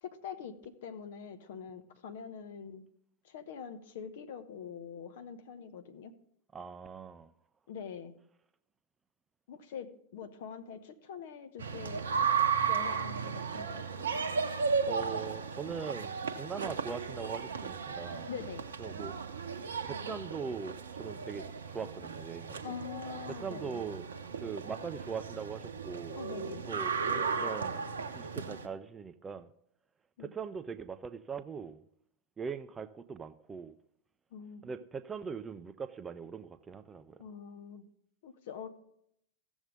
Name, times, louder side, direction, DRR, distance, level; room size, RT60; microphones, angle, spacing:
voice 1, 0.0-2.8 3.2-6.1 7.7-8.2 9.5-12.0 12.6-14.5 18.3-18.7 22.6-23.8 26.1-26.6 30.2-30.3 34.3-34.6 37.2-37.8 38.2-38.7, left 7 dB, 55° left, 1.0 m, -44 dB
voice 2, 6.5-7.3 14.9-18.3 18.8-19.1 19.8-22.6 23.4-24.1 24.4-26.2 26.7-27.8 28.1-29.5 30.2-31.8 32.4-33.7 34.6-37.2, right 6 dB, 15° right, 0.5 m, -41 dB
sound 1, 11.6-28.7, right 6 dB, 65° right, 0.8 m, -35 dB
15.5 x 7.2 x 3.7 m
figure-of-eight pair, 90°, 0 cm